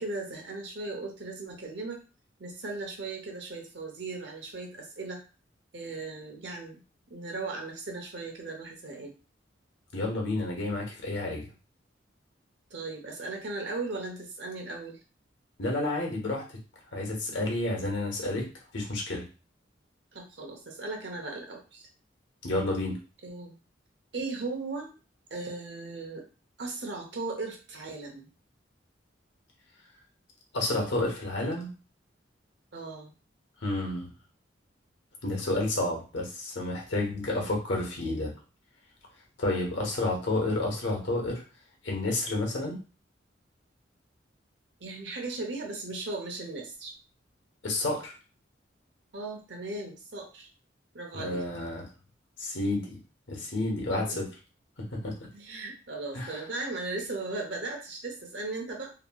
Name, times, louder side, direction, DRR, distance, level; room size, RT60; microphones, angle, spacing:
voice 1, 0.0-2.0 2.4-5.2 5.7-6.8 7.1-9.1 12.7-15.0 20.1-21.9 23.2-23.5 24.1-25.0 25.3-26.2 26.6-28.3 32.7-33.1 44.8-46.9 49.1-50.5 50.9-51.4 53.9-54.2 55.3-58.9, right 3 dB, 65° right, 2 dB, 0.8 m, -37 dB
voice 2, 9.9-11.5 15.6-16.4 16.9-18.4 18.7-19.2 22.4-23.0 30.5-31.7 33.6-34.1 35.2-38.3 39.4-41.4 41.8-42.8 47.6-48.1 51.1-51.8 52.4-53.0 53.3-54.3 54.9-55.1 56.1-56.3, left 2 dB, 80° left, 0 dB, 1.0 m, -30 dB
2.8 x 2.8 x 2.2 m, 0.34 s
head